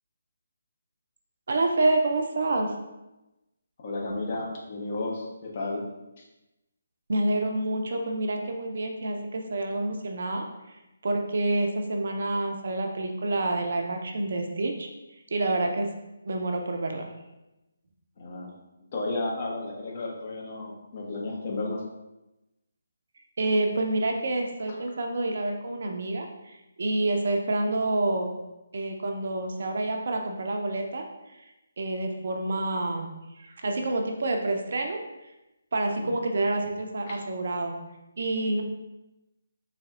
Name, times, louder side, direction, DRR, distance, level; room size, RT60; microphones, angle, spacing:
voice 1, 1.5-2.7 7.1-10.5 11.0-14.9 15.3-15.9 16.3-17.1 23.4-28.3 28.7-31.0 31.8-33.1 33.4-35.0 35.7-37.7 38.2-38.6, right 2 dB, 55° right, 3 dB, 0.5 m, -28 dB
voice 2, 3.8-5.9 18.2-18.5 18.9-21.8 36.0-36.1 37.1-37.2, left 2 dB, 40° left, -2 dB, 0.8 m, -33 dB
4.2 x 3.2 x 2.4 m, 0.97 s
figure-of-eight pair, 145°, 0 cm